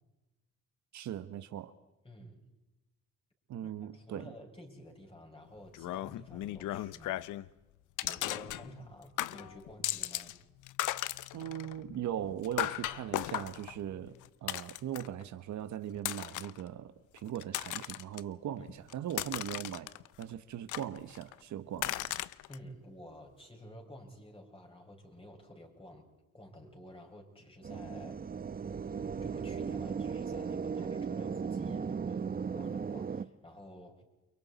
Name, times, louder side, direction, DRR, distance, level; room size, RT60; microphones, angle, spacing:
voice 1, 0.9-1.7 3.5-4.3 11.3-14.1 14.4-19.9 20.2-22.0, right 11 dB, 70° right, 1.1 m, -39 dB
voice 2, 2.0-2.4 3.6-7.3 8.0-10.4 22.5-26.1 26.3-28.3 29.2-34.0, equal, 20° left, 5.5 m, -51 dB
sound 1, 5.7-7.5 8.0-8.9 9.2-10.4 10.6-15.2 16.0-16.6 17.2-18.2 18.7-20.2 20.7-21.3 21.8-22.6, left 15 dB, 80° left, 0.6 m, -37 dB
sound 2, 27.6-33.3, right 6 dB, 30° right, 0.8 m, -36 dB
30.0 x 23.5 x 4.1 m
cardioid pair, 90°, 30 cm